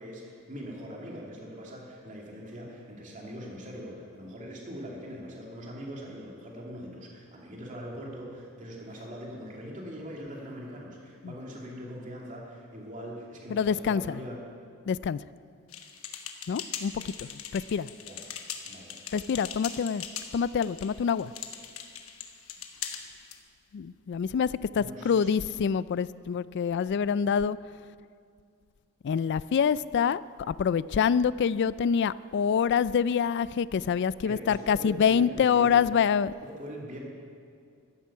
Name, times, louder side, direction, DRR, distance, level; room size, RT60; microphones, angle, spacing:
voice 1, 0.0-14.4 18.0-18.2 18.7-18.9 22.5-22.6 24.7-25.3 34.2-35.9 36.4-37.0, equal, 35° right, -2 dB, 2.6 m, -42 dB
voice 2, 13.5-14.2 14.9-15.2 16.5-17.9 19.1-20.0 20.3-21.3 23.7-27.6 29.0-30.2 30.5-36.3, left 7 dB, 55° left, 18 dB, 0.3 m, -26 dB
sound 1, 15.7-23.4, left 8 dB, 70° left, 1.2 m, -41 dB
14.5 x 13.0 x 5.6 m, 2.3 s
head